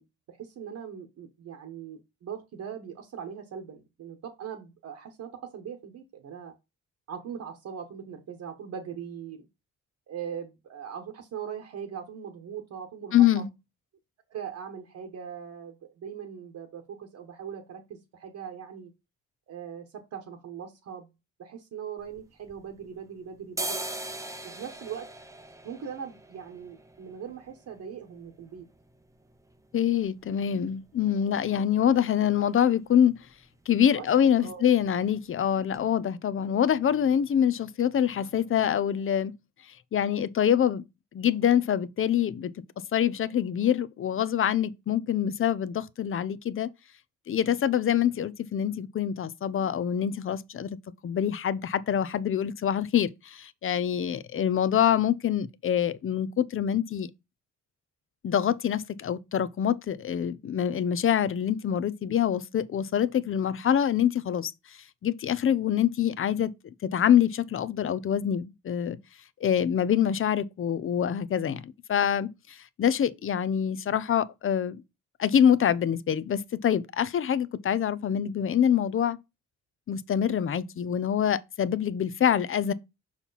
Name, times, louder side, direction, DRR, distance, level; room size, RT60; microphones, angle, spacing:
voice 1, 0.0-6.5 7.1-9.5 10.1-13.4 14.3-18.9 19.5-21.1 21.4-23.8 24.4-25.1 25.6-28.6 33.9-34.1 34.4-34.6, right 8 dB, 65° right, 1.3 m, -40 dB
voice 2, 13.1-13.5 29.7-33.1 33.7-39.3 39.9-40.8 41.1-42.5 42.9-46.7 47.3-50.8 51.0-57.1 58.2-64.5 65.0-66.5 66.8-69.0 69.4-71.6 71.9-74.8 75.2-79.2 79.9-82.7, left 9 dB, 45° left, 0.6 m, -25 dB
sound 1, 22.0-23.0 23.4-31.1 31.4-31.5 31.8-32.3 32.6-32.9 33.1-33.4 33.6-34.4 34.7-34.9 35.4-35.5 35.7-35.8, right 2 dB, 10° right, 0.7 m, -41 dB
5.7 x 4.4 x 4.1 m
cardioid pair, 90°, 30 cm